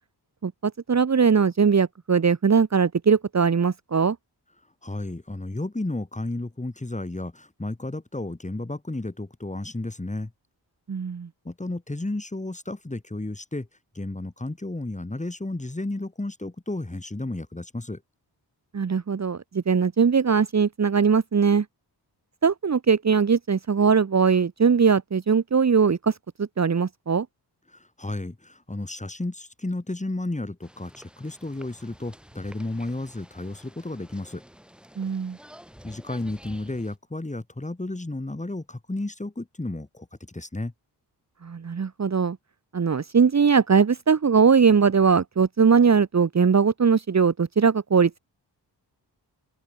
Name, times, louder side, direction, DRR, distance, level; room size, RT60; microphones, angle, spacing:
voice 1, 0.4-4.2 10.9-11.3 18.7-21.6 22.4-26.1 26.4-27.3 35.0-35.4 41.4-42.4 42.7-48.1, right 6 dB, 40° right, 1.4 m, -20 dB
voice 2, 4.8-10.3 11.4-13.7 13.9-18.0 27.7-34.4 35.8-40.7, left 2 dB, 15° left, 5.0 m, -33 dB
sound 1, 30.6-37.0, equal, ahead, 6.9 m, -50 dB
open air
cardioid pair, 85°, 42 cm